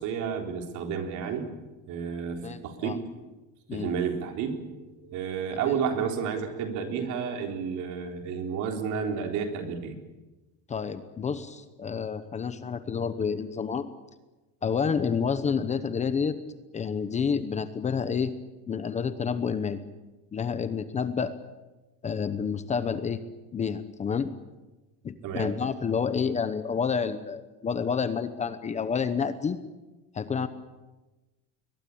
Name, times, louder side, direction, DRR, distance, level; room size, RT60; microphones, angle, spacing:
voice 1, 0.0-1.5 1.9-3.0 3.7-10.0 25.2-25.5, right 6 dB, 60° right, 4 dB, 3.8 m, -31 dB
voice 2, 2.4-3.0 3.7-3.9 5.6-5.8 10.7-13.8 14.6-16.4 16.7-18.3 18.7-19.8 20.3-21.3 22.0-23.2 23.5-24.3 25.0-29.6 30.1-30.5, left 6 dB, 20° left, 12 dB, 0.9 m, -29 dB
22.0 x 21.0 x 8.6 m, 1.1 s
cardioid pair, 175°, 34 cm